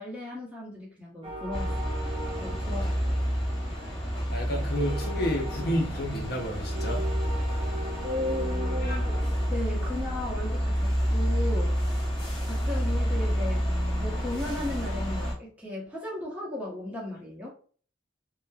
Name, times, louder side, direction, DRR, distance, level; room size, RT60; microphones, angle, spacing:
voice 1, 0.0-2.0 2.4-2.9 8.0-9.2 9.5-11.8 12.4-13.7 14.0-17.5, left 1 dB, 5° right, 0.7 m, -35 dB
sound 1, 1.2-14.5, equal, 25° right, 0.4 m, -40 dB
sound 2, 1.5-15.3, equal, 25° left, 0.8 m, -29 dB
voice 2, 4.3-7.0 7.3-8.0 8.9-9.0, equal, 55° left, 0.5 m, -31 dB
3.0 x 2.0 x 2.2 m
head